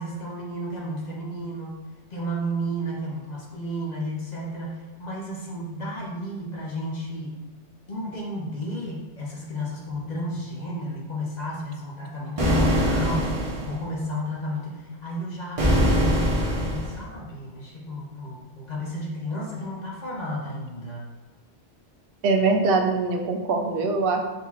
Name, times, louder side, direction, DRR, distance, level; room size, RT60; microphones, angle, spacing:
voice 1, 0.0-1.8 2.1-7.4 7.9-21.0, equal, 45° left, -3 dB, 0.8 m, -33 dB
sound 1, 12.4-13.8 15.6-17.0, equal, 35° right, 0.8 m, -22 dB
voice 2, 22.2-24.2, right 3 dB, 65° right, 4 dB, 0.7 m, -22 dB
4.2 x 3.8 x 2.3 m, 1.2 s
omnidirectional pair, 1.2 m